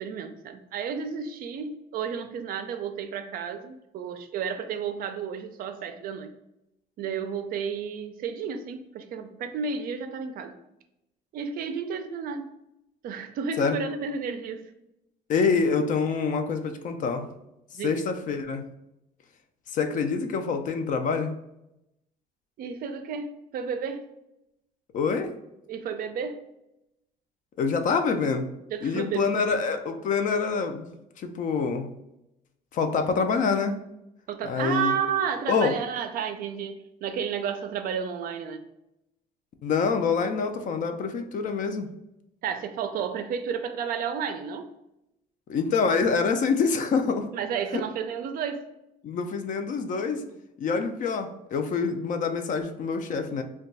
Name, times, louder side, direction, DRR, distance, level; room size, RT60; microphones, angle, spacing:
voice 1, 0.0-6.3 7.0-10.5 11.3-12.5 13.0-14.6 17.7-18.1 22.6-24.1 25.7-26.4 28.7-29.4 34.3-38.6 42.4-44.7 47.3-48.6, right 6 dB, 60° right, 8 dB, 0.4 m, -32 dB
voice 2, 15.3-17.3 17.8-18.6 19.7-21.3 24.9-25.4 27.6-28.5 28.8-31.9 32.7-33.8 34.5-35.0 35.5-35.7 39.6-41.9 45.5-47.3 47.7-47.8 49.0-50.2 50.6-53.4, left 5 dB, 50° left, 7 dB, 0.4 m, -26 dB
2.2 x 2.2 x 3.9 m, 0.87 s
cardioid pair, 110°, 17 cm